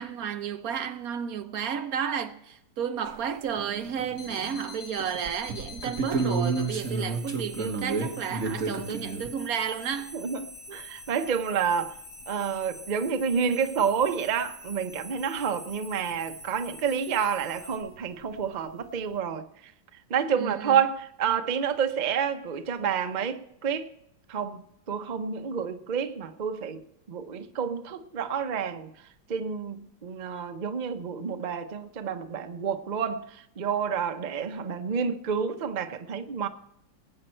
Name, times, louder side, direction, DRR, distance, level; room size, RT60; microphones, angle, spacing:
voice 1, 0.0-10.2 20.4-20.8, right 8 dB, 60° right, 1.1 m, -32 dB
sound 1, 3.1-3.2 3.5-4.6 5.0-9.3 11.9-12.0 12.2-12.3 13.3-13.4 14.0-14.1 17.7-17.8 18.0-18.4, right 4 dB, 45° right, 1.9 m, -31 dB
sound 2, 4.1-17.8, left 2 dB, 80° left, 5.3 m, -45 dB
voice 2, 10.1-11.9 12.3-19.4 20.1-23.9 24.3-26.8 27.1-28.9 29.3-36.5, right 7 dB, 75° right, 0.4 m, -29 dB
19.5 x 9.0 x 4.4 m
omnidirectional pair, 2.0 m